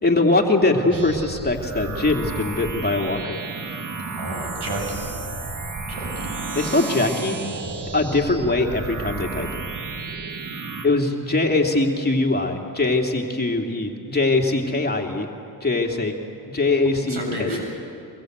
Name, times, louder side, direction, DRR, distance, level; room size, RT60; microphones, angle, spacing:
voice 1, 0.0-3.4 6.5-7.4 7.9-9.5 10.8-15.3 15.6-16.1 16.5-17.6, left 2 dB, 25° left, 1 dB, 2.9 m, -22 dB
sound 1, 0.9-10.9, right 3 dB, 45° right, 2.0 m, -32 dB
voice 2, 4.2-5.1 5.9-6.3 17.1-17.6, right 1 dB, 70° right, 1 dB, 7.6 m, -31 dB
24.0 x 22.5 x 8.2 m, 2.6 s
cardioid pair, 60°, 42 cm